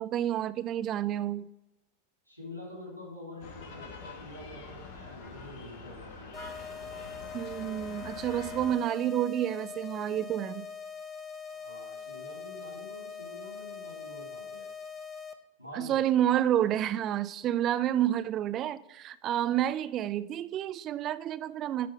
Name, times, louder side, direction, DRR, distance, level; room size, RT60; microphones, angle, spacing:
voice 1, 0.0-1.5 7.3-10.7 15.7-21.9, right 11 dB, 30° right, 14 dB, 0.4 m, -29 dB
voice 2, 2.3-6.4 11.5-14.7 15.6-16.0 19.6-19.7, left 1 dB, 85° left, -2 dB, 2.7 m, -46 dB
sound 1, 3.4-8.7, left 4 dB, 50° left, 1.2 m, -45 dB
sound 2, 6.3-15.3, left 6 dB, 15° left, 0.6 m, -42 dB
10.5 x 3.8 x 4.7 m, 0.95 s
figure-of-eight pair, 90°, 0 cm